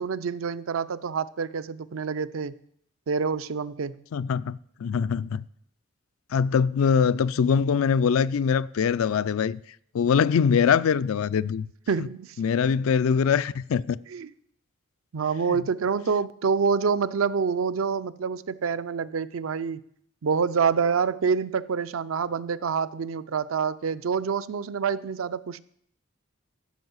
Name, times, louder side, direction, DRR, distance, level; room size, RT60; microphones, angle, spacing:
voice 1, 0.0-2.5 3.1-4.0 11.9-12.4 14.1-14.3 15.1-19.8 20.2-25.6, right 6 dB, 75° right, 0.5 m, -27 dB
voice 2, 4.1-5.4 6.3-9.6 9.9-11.7 12.4-14.0, left 6 dB, 80° left, 0.4 m, -23 dB
12.5 x 5.4 x 8.0 m
head